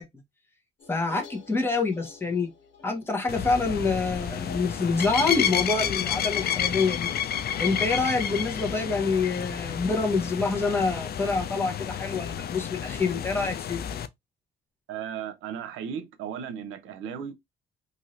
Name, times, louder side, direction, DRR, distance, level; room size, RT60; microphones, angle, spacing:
sound 1, 0.8-7.2, left 5 dB, 85° left, 1.1 m, -46 dB
voice 1, 0.9-2.5 2.8-7.1 7.6-13.8, left 4 dB, 10° left, 1.0 m, -26 dB
sound 2, 3.3-14.1, left 9 dB, 50° left, 0.4 m, -30 dB
voice 2, 14.9-17.3, right 8 dB, 90° right, 0.6 m, -35 dB
2.7 x 2.6 x 3.1 m
cardioid pair, 90°, 20 cm